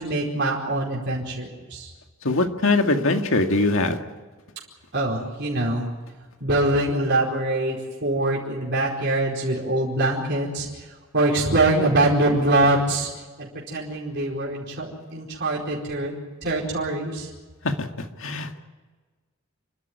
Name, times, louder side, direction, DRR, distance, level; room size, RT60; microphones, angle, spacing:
voice 1, 0.0-1.9 4.9-5.9 6.4-10.7 11.1-13.1 13.4-16.1 16.4-17.3, right 2 dB, 55° right, -3 dB, 4.7 m, -23 dB
voice 2, 2.2-4.0 17.6-17.7 18.2-18.6, left 2 dB, 70° left, 5 dB, 2.1 m, -21 dB
29.0 x 13.0 x 9.6 m, 1.4 s
head